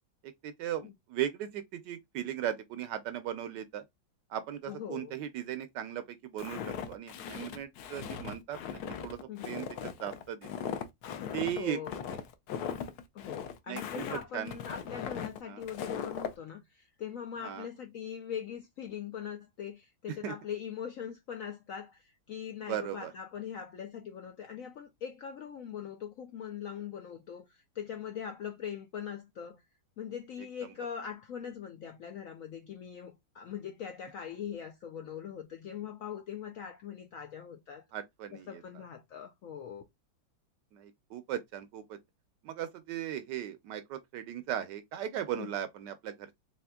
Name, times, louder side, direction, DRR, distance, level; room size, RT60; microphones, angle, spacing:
voice 1, 0.2-3.8 4.3-10.5 11.3-11.8 13.7-14.0 14.3-14.6 15.5-15.6 17.4-17.7 20.1-20.3 22.6-23.1 37.9-38.8 40.7-42.0 42.4-46.4, right 11 dB, 75° right, 1.1 m, -37 dB
voice 2, 4.7-5.1 9.3-9.6 11.2-11.9 13.1-29.6 30.0-37.8 38.3-39.8 45.4-45.5, left 8 dB, 90° left, 0.7 m, -41 dB
Walk footsteps, 6.4-16.3, left 7 dB, 65° left, 1.0 m, -39 dB
4.2 x 3.8 x 2.2 m
omnidirectional pair, 2.1 m